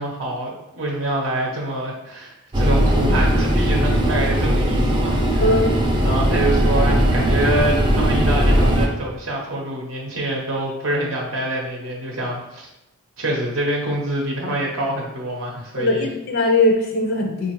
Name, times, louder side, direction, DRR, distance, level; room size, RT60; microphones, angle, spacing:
voice 1, 0.0-5.5 5.9-12.7 13.2-16.1, right 1 dB, 70° right, -2 dB, 0.6 m, -25 dB
sound 1, 2.5-8.9, equal, 25° right, 0.4 m, -18 dB
voice 2, 5.4-5.8 15.8-17.5, left 2 dB, 50° left, 3 dB, 0.4 m, -20 dB
4.6 x 2.4 x 3.0 m, 0.88 s
head